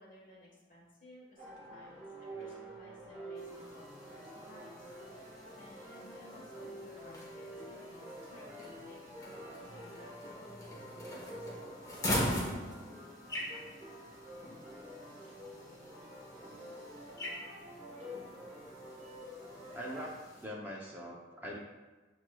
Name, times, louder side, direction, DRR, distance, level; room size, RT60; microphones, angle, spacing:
voice 1, 0.0-4.9 5.6-12.3, left 1 dB, 45° left, -3 dB, 1.2 m, -57 dB
sound 1, 1.4-20.1, equal, 35° right, 0.9 m, -48 dB
sound 2, 3.4-20.4, left 1 dB, 20° left, 0.9 m, -43 dB
voice 2, 19.7-20.2 20.4-21.6, equal, 10° right, -3 dB, 0.4 m, -42 dB
7.5 x 3.0 x 2.2 m, 1.2 s
head